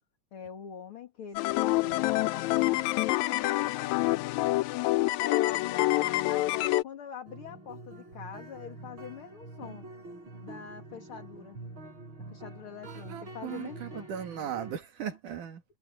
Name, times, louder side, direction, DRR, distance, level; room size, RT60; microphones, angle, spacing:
voice 1, 0.3-4.3 5.2-9.9 10.4-11.6 12.3-14.1, left 8 dB, 45° left, 2.7 m, -44 dB
sound 1, 1.4-6.8, left 19 dB, 80° left, 1.8 m, -27 dB
sound 2, 7.3-14.7, right 2 dB, 40° right, 6.0 m, -46 dB
voice 2, 12.9-15.6, right 9 dB, 75° right, 3.7 m, -38 dB
omnidirectional pair, 3.7 m